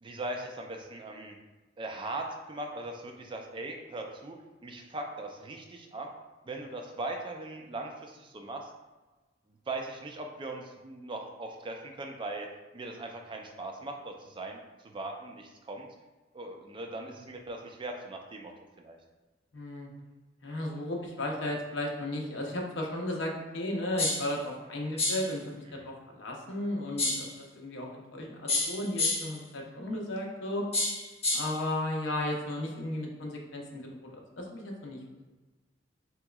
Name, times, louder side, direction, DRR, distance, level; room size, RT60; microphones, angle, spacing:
voice 1, 0.0-1.3 1.8-6.1 6.4-8.7 9.7-12.5 12.7-15.9 16.3-18.5 18.8-19.0 25.7-25.9, right 2 dB, 25° right, 2 dB, 0.4 m, -39 dB
voice 2, 19.5-19.9 20.4-30.6 31.3-35.0, left 1 dB, 75° left, 0 dB, 0.7 m, -35 dB
sound 1, 24.0-24.3 25.0-25.3 27.0-27.3 28.5-29.4 30.7-31.6, left 2 dB, 35° left, 0.9 m, -29 dB
3.5 x 2.9 x 2.3 m, 1.2 s
head